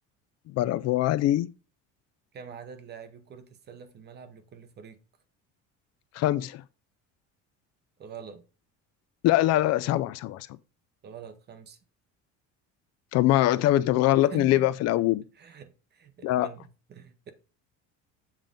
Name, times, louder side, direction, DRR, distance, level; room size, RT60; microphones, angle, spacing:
voice 1, 0.5-1.5 6.1-6.6 9.2-10.5 13.1-15.2 16.2-16.5, left 14 dB, 55° left, 0.4 m, -23 dB
voice 2, 2.3-5.0 8.0-8.4 11.0-11.8 14.3-14.7 15.3-17.3, right 7 dB, 30° right, 0.8 m, -45 dB
7.4 x 3.7 x 5.1 m
cardioid pair, 160°, 31 cm